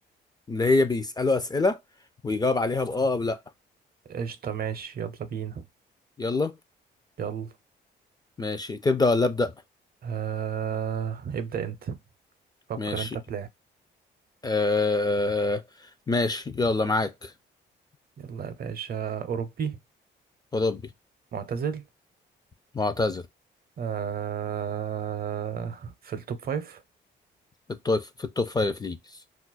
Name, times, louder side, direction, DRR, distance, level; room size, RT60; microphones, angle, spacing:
voice 1, 0.5-1.8 2.2-3.4 6.2-6.5 8.4-9.5 12.8-13.1 14.4-15.6 16.1-17.3 20.5-20.8 22.7-23.2 27.8-29.0, left 3 dB, 20° left, 0.4 m, -25 dB
voice 2, 4.1-5.6 7.2-7.5 10.0-12.0 12.7-13.5 18.2-19.8 21.3-21.8 23.8-26.8, right 8 dB, 50° right, 0.6 m, -32 dB
2.4 x 2.1 x 3.9 m
cardioid pair, 80°, 20 cm